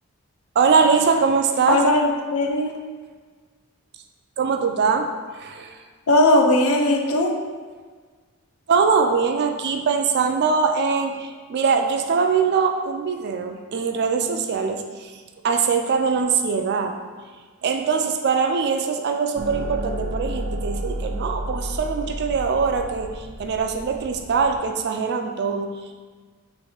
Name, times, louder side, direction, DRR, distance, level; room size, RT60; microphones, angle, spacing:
voice 1, 0.6-1.8 4.4-5.1 5.4-5.7 8.7-14.8 15.4-16.9 17.6-23.1 23.4-25.9, right 5 dB, 50° right, 5 dB, 0.3 m, -22 dB
voice 2, 1.7-2.7 6.1-7.3, left 1 dB, 75° left, 3 dB, 0.5 m, -18 dB
sound 1, 19.4-24.6, right 1 dB, 90° right, 0.6 m, -31 dB
3.1 x 3.0 x 4.3 m, 1.5 s
head